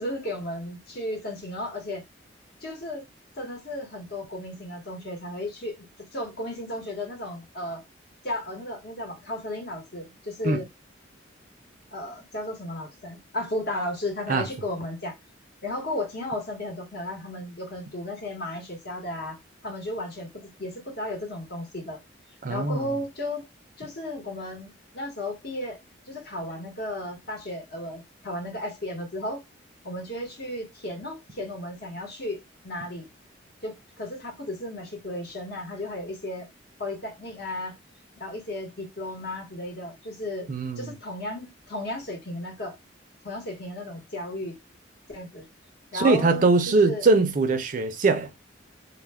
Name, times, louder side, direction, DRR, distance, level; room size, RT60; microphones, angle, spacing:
voice 1, 0.0-2.0 2.6-3.0 3.4-5.9 6.1-7.8 8.2-10.7 11.9-15.1 15.6-19.4 19.6-22.0 22.5-23.4 23.8-25.8 26.1-29.4 29.8-33.1 33.6-36.5 36.8-37.7 38.2-40.5 40.8-42.7 43.2-44.5 45.1-45.4 45.9-47.0, left 1 dB, 55° left, 1.0 m, -34 dB
voice 2, 22.4-22.9 40.5-40.9 45.9-48.3, right 3 dB, 45° right, 0.4 m, -22 dB
2.2 x 2.1 x 3.3 m
head